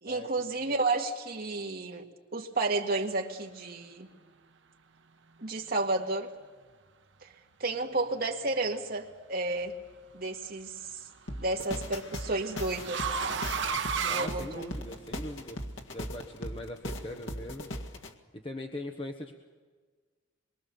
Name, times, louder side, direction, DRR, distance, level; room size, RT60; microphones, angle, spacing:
voice 1, 0.0-4.1 5.4-6.3 7.2-7.3 7.6-9.8 10.1-11.0 11.4-13.5 13.9-14.7, right 2 dB, 50° right, 1 dB, 2.0 m, -32 dB
sound 1, 9.2-9.7 11.1-15.1, right 6 dB, 70° right, 1.0 m, -34 dB
sound 2, 11.3-18.1, left 1 dB, 80° left, 1.9 m, -39 dB
voice 2, 14.1-15.6 15.9-17.7 18.4-19.4, left 1 dB, 30° left, 3 dB, 1.2 m, -41 dB
26.5 x 23.0 x 7.0 m, 1.4 s
head